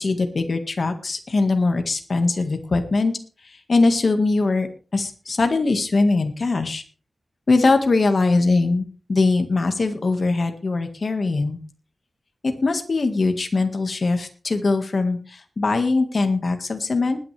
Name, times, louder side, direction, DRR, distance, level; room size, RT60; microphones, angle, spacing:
voice 1, 0.0-3.2 3.7-4.7 4.9-6.8 7.5-8.8 9.1-11.6 12.4-17.2, left 3 dB, 50° left, 6 dB, 1.8 m, -21 dB
20.5 x 9.7 x 3.4 m, 0.37 s
wide cardioid pair, 130°, 0 cm